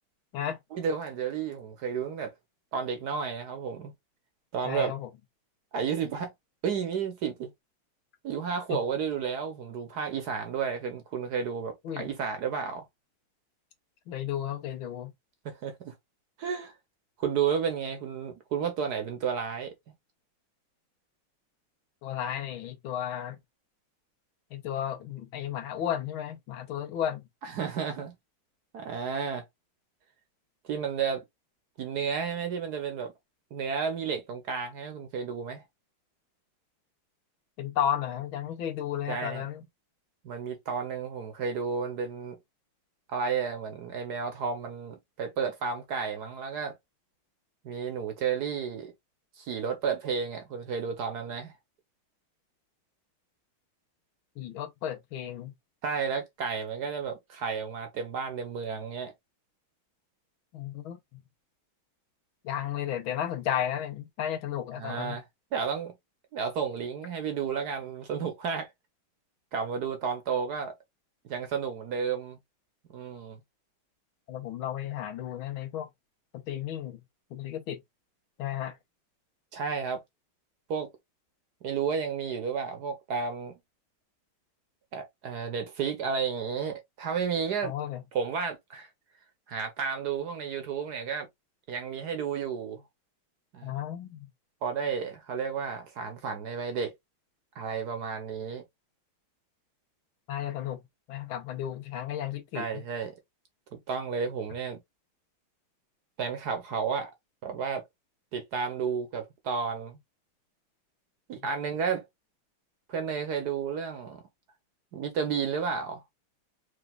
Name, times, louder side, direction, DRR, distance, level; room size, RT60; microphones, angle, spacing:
voice 1, 0.7-2.3 2.7-3.9 4.5-4.9 5.7-6.3 6.6-7.5 8.2-12.8 15.4-15.9 16.4-16.7 17.2-19.7 27.4-28.1 28.7-29.4 30.6-31.2 31.8-33.1 33.5-35.6 39.1-39.4 40.2-42.4 43.1-46.7 47.6-48.9 49.4-51.5 55.8-59.1 64.8-65.2 65.5-65.9 66.3-68.7 69.5-70.7 71.3-72.4 72.9-73.4 79.5-80.0 80.7-80.9 81.6-83.5 84.9-87.7 88.1-88.9 89.5-91.3 91.7-92.8 93.5-93.7 94.6-96.9 97.6-98.6 102.5-103.1 103.7-104.8 106.2-107.1 107.4-107.8 108.3-110.0 111.3-112.0 112.9-114.2 114.9-116.0, right 6 dB, 60° right, 1.2 m, -32 dB
voice 2, 4.6-5.1 8.7-8.8 11.8-12.1 14.1-15.1 22.0-23.4 24.5-27.3 37.6-39.6 54.4-55.5 60.5-61.2 62.4-65.2 74.3-75.9 76.3-77.0 77.3-77.8 78.4-78.8 87.6-88.0 93.6-94.3 100.3-100.8 101.1-102.8 111.3-111.5, left 10 dB, 80° left, 1.8 m, -33 dB
4.9 x 3.3 x 2.3 m
omnidirectional pair, 2.3 m